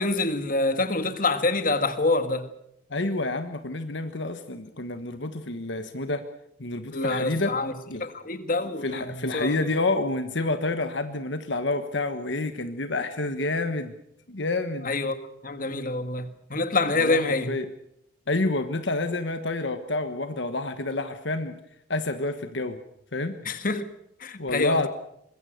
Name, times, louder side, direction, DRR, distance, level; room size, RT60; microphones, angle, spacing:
voice 1, 0.0-2.5 6.9-7.7 8.0-9.5 14.8-17.5 23.5-23.8 24.2-24.9, left 2 dB, 45° left, 1.9 m, -26 dB
voice 2, 2.9-6.3 6.6-7.6 7.9-8.1 8.8-13.9 14.3-14.9 16.9-17.7 18.3-21.6 21.9-22.8 23.1-23.3 24.4-24.9, left 2 dB, 65° left, 1.4 m, -28 dB
25.0 x 21.5 x 6.6 m
head